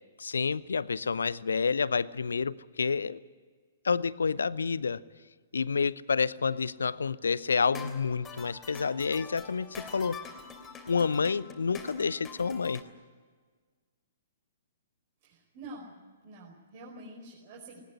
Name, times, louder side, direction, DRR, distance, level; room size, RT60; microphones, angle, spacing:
voice 1, 0.2-3.2 3.8-5.0 5.5-10.2 10.9-12.8, left 5 dB, 65° left, 20 dB, 0.7 m, -29 dB
sound 1, 7.7-12.8, left 5 dB, 15° left, 3.1 m, -45 dB
voice 2, 15.2-16.0 16.2-17.8, right 1 dB, 40° right, -3 dB, 5.0 m, -47 dB
19.5 x 19.0 x 9.8 m, 1.5 s
figure-of-eight pair, 115°, 0 cm